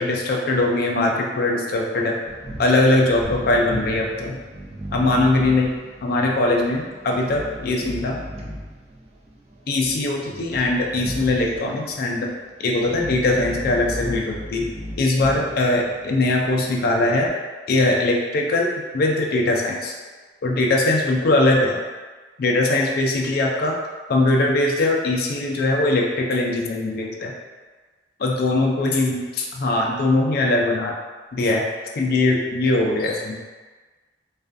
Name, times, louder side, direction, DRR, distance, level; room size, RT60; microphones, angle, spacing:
voice 1, 0.0-2.2 2.6-4.4 4.9-5.7 6.0-8.2 9.7-12.3 12.6-14.7 15.0-17.3 17.7-19.9 20.4-21.8 22.4-23.8 24.1-27.3 28.2-29.2 29.5-30.9 31.3-31.6 32.0-33.4, left 2 dB, 55° left, 0 dB, 0.4 m, -21 dB
sound 1, 2.3-17.3, equal, 35° right, 0.3 m, -36 dB
2.3 x 2.2 x 2.5 m, 1.4 s
head